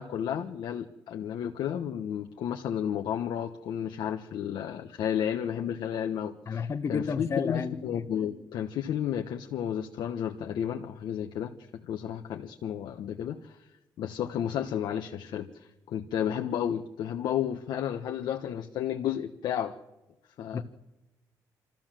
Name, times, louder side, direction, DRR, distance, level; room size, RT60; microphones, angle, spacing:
voice 1, 0.0-13.7 14.0-19.8 20.4-20.6, left 9 dB, 75° left, 1.1 m, -32 dB
voice 2, 6.5-7.8 20.5-20.6, left 5 dB, 40° left, 1.0 m, -31 dB
26.5 x 13.5 x 7.5 m
cardioid pair, 95°, 8 cm